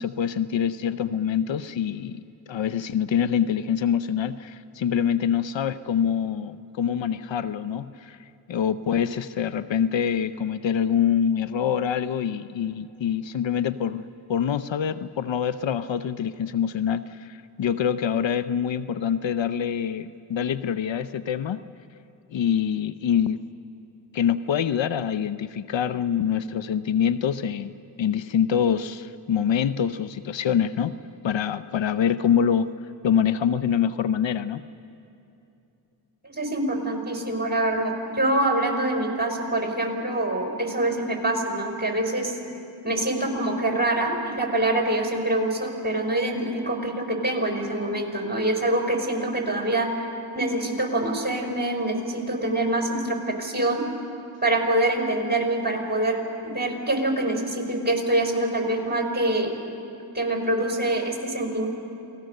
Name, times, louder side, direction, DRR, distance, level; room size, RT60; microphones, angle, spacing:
voice 1, 0.0-8.2 8.5-14.0 14.3-21.6 22.3-23.4 24.1-30.9 31.2-32.7 33.0-34.6, left 8 dB, 70° left, 13 dB, 0.8 m, -25 dB
voice 2, 36.3-42.4 42.8-49.9 50.3-53.8 54.4-59.5 60.1-61.7, right 1 dB, 20° right, 2 dB, 5.6 m, -25 dB
28.5 x 19.0 x 6.6 m, 2.8 s
cardioid pair, 45°, 47 cm